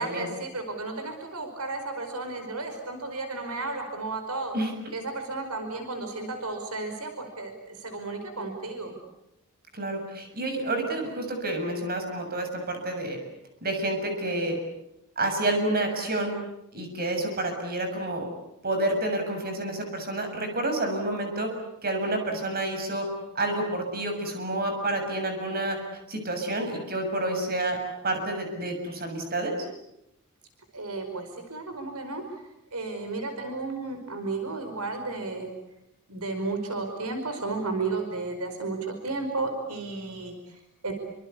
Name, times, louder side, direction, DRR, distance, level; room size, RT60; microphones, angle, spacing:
voice 1, 0.0-4.5 4.9-8.9 30.7-32.2 32.7-35.5 36.1-40.9, right 3 dB, 80° right, 6 dB, 5.1 m, -33 dB
voice 2, 9.7-13.2 13.6-14.6 15.2-16.3 16.7-18.3 18.6-21.5 21.8-23.1 23.4-25.8 26.1-27.8 28.0-29.5, right 1 dB, 45° right, 5 dB, 6.9 m, -29 dB
28.0 x 25.5 x 8.3 m, 0.86 s
head